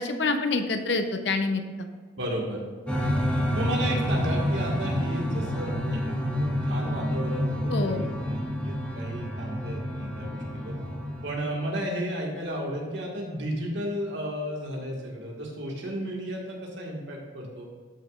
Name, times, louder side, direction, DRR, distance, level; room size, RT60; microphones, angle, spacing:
voice 1, 0.0-1.9 7.7-8.0, left 3 dB, 65° left, 6 dB, 0.8 m, -27 dB
voice 2, 2.2-3.1 3.5-10.8 11.2-17.7, right 1 dB, 75° right, -2 dB, 1.9 m, -33 dB
sound 1, 2.9-11.3, equal, 5° left, 1.1 m, -28 dB
13.0 x 6.5 x 2.5 m, 1.5 s
head